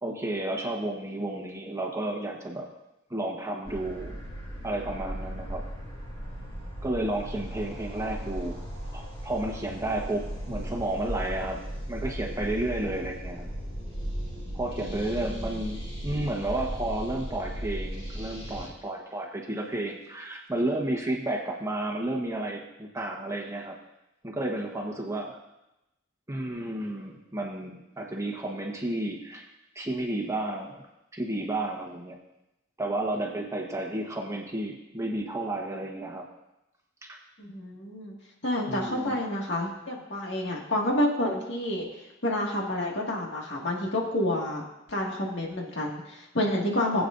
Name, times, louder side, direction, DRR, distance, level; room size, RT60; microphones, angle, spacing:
voice 1, 0.0-2.7 3.1-4.1 4.6-5.6 6.8-8.6 8.9-11.6 11.9-13.5 14.5-23.8 24.2-25.4 26.3-29.5 29.7-30.8 31.1-32.2 32.8-36.2 37.0-37.2 38.7-39.2, right 1 dB, 15° right, 0 dB, 1.2 m, -32 dB
sound 1, 3.6-18.7, equal, 30° left, 3.0 m, -37 dB
voice 2, 14.8-15.5 37.4-38.1 38.4-41.9 42.2-44.6 44.9-47.1, left 1 dB, 65° left, -1 dB, 2.0 m, -29 dB
18.5 x 8.3 x 2.6 m, 0.92 s
head